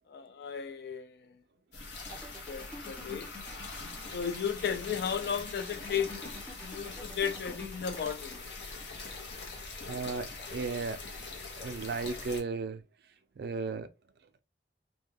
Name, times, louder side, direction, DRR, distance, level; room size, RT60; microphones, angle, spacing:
voice 1, 0.1-1.4 2.5-3.3 4.1-6.1 6.6-8.4, left 7 dB, 60° left, 0.3 m, -34 dB
sound 1, 1.7-12.4, left 3 dB, 80° left, 0.7 m, -43 dB
sound 2, 2.1-9.9, left 1 dB, 10° left, 0.6 m, -49 dB
voice 2, 9.9-11.0 11.5-12.8 13.4-13.9, right 4 dB, 65° right, 0.3 m, -35 dB
2.2 x 2.2 x 3.2 m
head